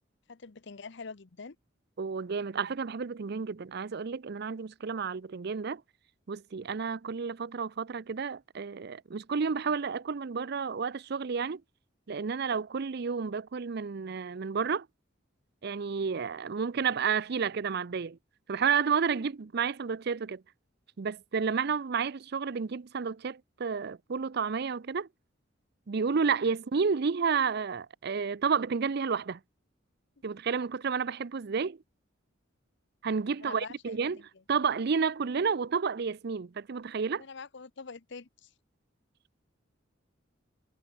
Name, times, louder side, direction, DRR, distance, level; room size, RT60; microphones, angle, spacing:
voice 1, 0.3-1.6 15.9-16.1 33.4-34.2 37.2-38.5, left 4 dB, 60° left, 0.8 m, -45 dB
voice 2, 2.0-5.8 6.3-11.6 12.1-14.9 15.6-18.2 18.5-20.4 21.0-25.1 25.9-29.4 30.2-31.8 33.0-34.2 34.5-37.2, right 5 dB, 55° right, 0.5 m, -31 dB
head